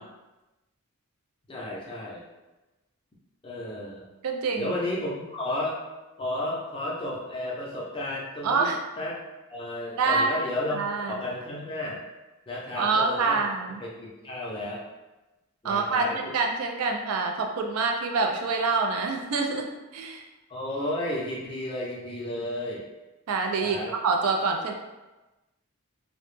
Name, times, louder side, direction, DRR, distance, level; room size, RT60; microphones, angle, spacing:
voice 1, 1.5-2.2 3.4-4.1 4.5-5.8 6.2-9.2 9.5-12.0 12.5-13.5 13.8-14.8 15.6-16.2 20.5-22.8 23.6-23.9, left 1 dB, 25° left, -4 dB, 0.4 m, -33 dB
voice 2, 4.2-4.7 8.4-8.8 9.9-10.4 10.8-11.2 12.8-13.8 15.6-19.7 19.9-20.2 23.3-23.8 24.0-24.7, right 4 dB, 80° right, 3 dB, 0.4 m, -26 dB
2.1 x 2.0 x 3.0 m, 1.1 s
head